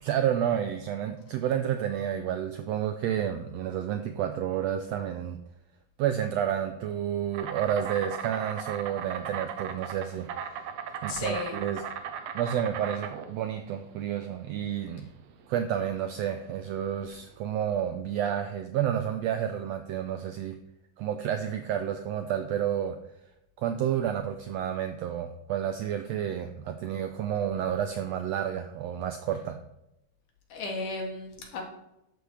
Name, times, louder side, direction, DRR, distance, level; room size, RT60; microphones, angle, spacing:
voice 1, 0.0-5.4 6.0-10.6 11.0-11.8 12.3-15.1 15.5-20.6 21.0-23.0 23.6-29.6, right 9 dB, 85° right, 7 dB, 1.5 m, -30 dB
Insect, 7.3-17.3, right 8 dB, 70° right, 1.7 m, -38 dB
voice 2, 11.1-11.6 29.3-29.4 30.5-31.6, left 3 dB, 80° left, 1 dB, 3.5 m, -35 dB
11.5 x 8.1 x 3.4 m, 0.87 s
omnidirectional pair, 3.6 m